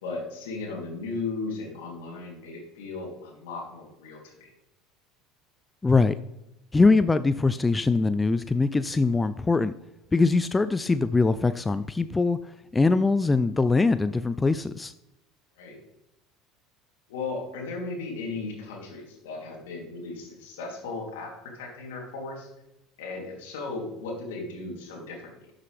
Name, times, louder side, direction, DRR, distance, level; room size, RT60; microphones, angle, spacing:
voice 1, 0.0-4.5 15.6-15.8 17.1-22.5 23.0-25.5, left 3 dB, 75° left, 0 dB, 3.1 m, -36 dB
voice 2, 5.8-6.2 6.7-9.7 10.1-12.4 12.7-14.9, left 3 dB, 15° left, 13 dB, 0.4 m, -22 dB
12.0 x 7.5 x 3.4 m, 0.87 s
hypercardioid pair, 75°, 0 cm